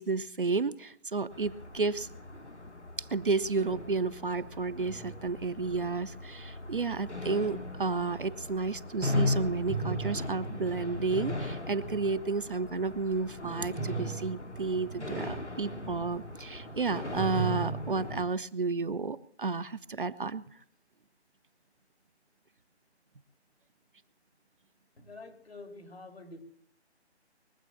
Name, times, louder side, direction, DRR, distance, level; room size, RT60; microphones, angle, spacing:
voice 1, 0.0-2.1 3.0-20.4, right 4 dB, 50° right, 12 dB, 0.6 m, -32 dB
sound 1, 1.3-18.2, equal, 85° left, 2.2 m, -37 dB
voice 2, 25.0-26.4, left 2 dB, 60° left, 5 dB, 3.2 m, -47 dB
22.0 x 7.6 x 7.3 m, 0.66 s
figure-of-eight pair, 150°, 34 cm